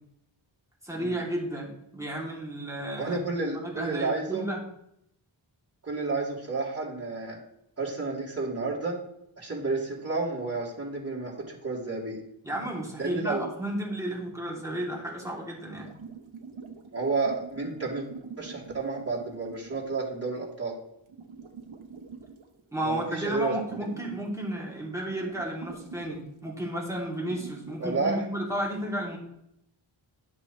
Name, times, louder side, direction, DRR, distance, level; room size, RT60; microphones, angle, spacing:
voice 1, 0.8-3.2 3.6-4.6 12.4-15.9 22.7-29.2, right 1 dB, 5° right, -4 dB, 3.0 m, -33 dB
voice 2, 3.0-4.5 5.8-7.4 7.8-9.0 9.4-12.2 13.0-13.5 16.9-18.1 18.4-20.8 22.8-23.6 27.8-28.2, right 3 dB, 30° right, -6 dB, 3.3 m, -31 dB
sound 1, 15.7-20.3 21.1-22.6 22.9-24.2 24.6-24.7 25.1-26.4 27.2-28.0, right 5 dB, 80° right, 1.2 m, -45 dB
12.0 x 6.7 x 3.3 m, 0.76 s
wide cardioid pair, 80°, 47 cm